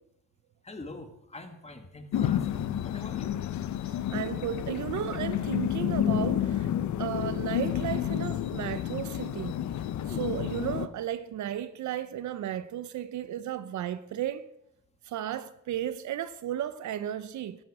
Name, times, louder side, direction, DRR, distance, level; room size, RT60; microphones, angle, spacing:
voice 1, 0.6-3.3 10.1-10.3, left 2 dB, 20° left, 1.9 m, -44 dB
sound 1, 2.1-10.9, left 11 dB, 70° left, 0.8 m, -30 dB
voice 2, 4.1-6.7 7.0-9.6 10.2-14.5 15.1-17.6, right 11 dB, 70° right, 0.8 m, -34 dB
13.5 x 11.0 x 4.9 m
cardioid pair, 90°, 30 cm